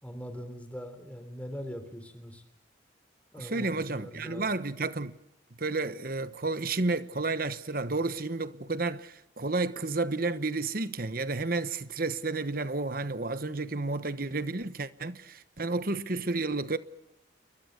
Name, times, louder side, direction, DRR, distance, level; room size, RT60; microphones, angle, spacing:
voice 1, 0.0-2.4 3.3-4.6, equal, 5° left, 3.6 m, -41 dB
voice 2, 3.4-5.2 5.6-16.8, right 3 dB, 45° right, 1.1 m, -31 dB
30.0 x 23.5 x 6.7 m
head